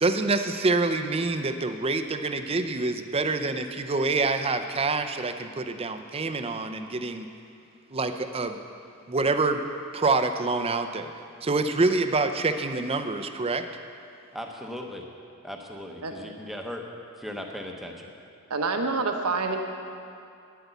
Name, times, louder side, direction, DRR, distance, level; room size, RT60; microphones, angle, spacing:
voice 1, 0.0-7.3 7.9-8.6 9.1-9.6 9.9-11.1 11.4-13.7, right 3 dB, 25° right, 8 dB, 0.5 m, -26 dB
voice 2, 14.3-15.0 15.4-16.8 17.2-18.1, left 1 dB, ahead, 1 dB, 0.9 m, -37 dB
voice 3, 18.5-19.6, right 4 dB, 85° right, 4 dB, 1.2 m, -26 dB
10.0 x 8.0 x 8.1 m, 2.5 s
head